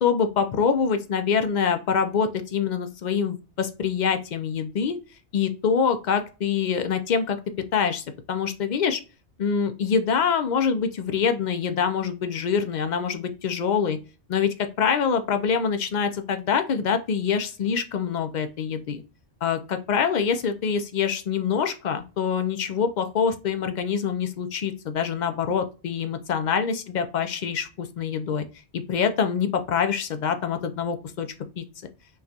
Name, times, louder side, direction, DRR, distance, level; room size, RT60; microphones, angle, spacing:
voice 1, 0.0-5.0 5.3-7.4 7.7-9.0 9.4-14.0 14.3-19.0 19.4-28.4 28.7-31.3 31.6-31.7, left 6 dB, 65° left, 8 dB, 0.4 m, -25 dB
5.4 x 2.3 x 2.7 m, 0.33 s
omnidirectional pair, 1.2 m